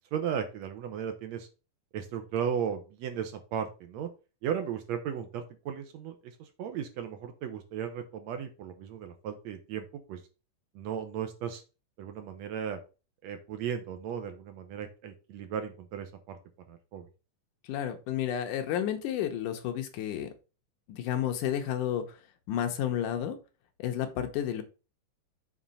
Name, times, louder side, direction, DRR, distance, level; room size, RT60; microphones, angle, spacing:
voice 1, 0.1-1.5 1.9-4.1 4.4-10.2 10.8-11.6 12.0-12.8 13.2-16.4 16.7-17.1, right 8 dB, 70° right, 7 dB, 1.9 m, -36 dB
voice 2, 17.7-20.3 20.9-22.2 22.5-23.4 23.8-24.6, left 10 dB, 85° left, 6 dB, 2.5 m, -31 dB
7.3 x 3.8 x 5.5 m, 0.32 s
omnidirectional pair, 3.6 m